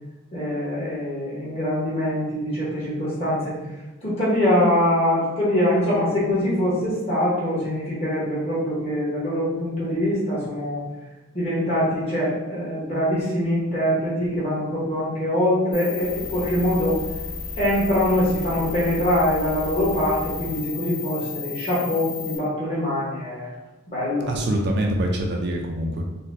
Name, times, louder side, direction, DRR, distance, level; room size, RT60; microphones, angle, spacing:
voice 1, 0.3-3.5 4.0-10.8 11.3-17.0 17.6-23.5 23.9-24.3, left 1 dB, 30° left, -8 dB, 1.1 m, -23 dB
sound 1, 15.7-22.4, left 5 dB, 80° left, 1.0 m, -33 dB
voice 2, 24.3-26.1, right 1 dB, 50° right, 2 dB, 0.3 m, -24 dB
4.0 x 2.1 x 2.6 m, 1.1 s
head